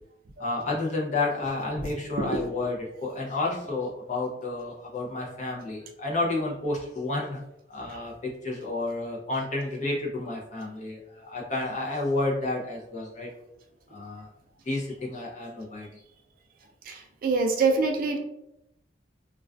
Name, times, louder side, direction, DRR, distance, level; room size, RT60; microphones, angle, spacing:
voice 1, 0.4-7.4 7.7-13.3 13.9-14.3 14.7-16.0, left 2 dB, 40° left, -2 dB, 0.5 m, -31 dB
voice 2, 16.9-18.2, right 4 dB, 45° right, 3 dB, 0.3 m, -25 dB
2.3 x 2.3 x 2.3 m, 0.84 s
head